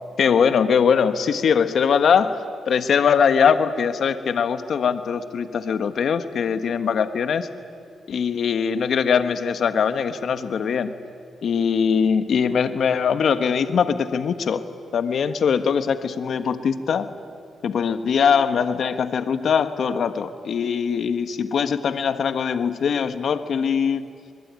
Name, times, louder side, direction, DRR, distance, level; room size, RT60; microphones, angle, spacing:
voice 1, 0.2-2.4 2.7-7.5 8.1-10.9 11.4-14.6 14.9-17.1 17.6-24.1, left 6 dB, 65° left, 9 dB, 1.4 m, -21 dB
25.0 x 22.0 x 9.6 m, 2.2 s
cardioid pair, 85°, 0 cm